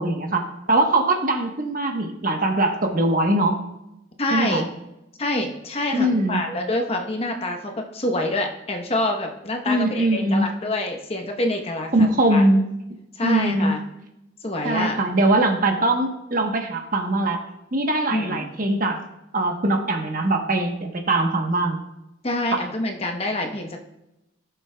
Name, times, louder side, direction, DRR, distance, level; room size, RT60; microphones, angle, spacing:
voice 1, 0.0-3.6 4.3-4.6 5.9-6.4 9.7-10.5 11.9-12.6 13.2-13.8 14.6-17.4 17.7-19.0 19.3-21.8 22.5-22.6, right 2 dB, 45° right, 3 dB, 1.1 m, -21 dB
voice 2, 4.2-4.6 5.2-12.4 13.1-13.8 14.4-15.0 18.1-18.5 22.2-23.8, left 1 dB, 30° left, 3 dB, 0.9 m, -26 dB
15.0 x 6.8 x 2.3 m, 0.89 s
head